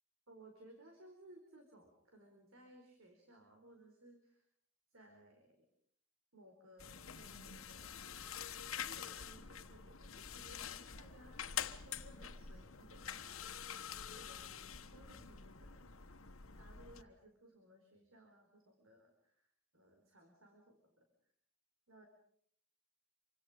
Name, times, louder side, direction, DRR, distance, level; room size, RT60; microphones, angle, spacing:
voice 1, 0.3-4.4 4.9-5.6 6.3-8.4 8.8-11.4 11.8-13.5 14.2-15.9 16.6-21.1 21.9-22.1, right 1 dB, 80° right, 3 dB, 4.6 m, -61 dB
sound 1, 6.8-17.0, left 8 dB, 80° left, 1.4 m, -47 dB
27.5 x 25.0 x 5.2 m, 0.64 s
head